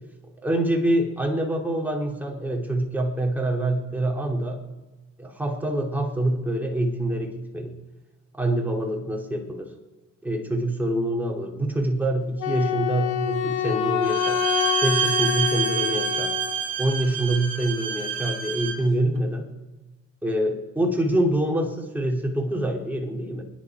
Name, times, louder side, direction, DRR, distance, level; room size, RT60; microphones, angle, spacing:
voice 1, 0.4-4.6 5.2-7.8 8.3-9.7 10.2-14.4 14.8-16.3 16.8-19.5 20.2-23.4, right 1 dB, 5° right, 0 dB, 2.8 m, -25 dB
Wind instrument woodwind instrument, 12.4-16.7, left 9 dB, 85° left, 1.1 m, -26 dB
Bowed string instrument, 14.0-18.9, right 7 dB, 55° right, 2.5 m, -27 dB
29.0 x 10.0 x 4.8 m, 1.2 s
cardioid pair, 90°, 30 cm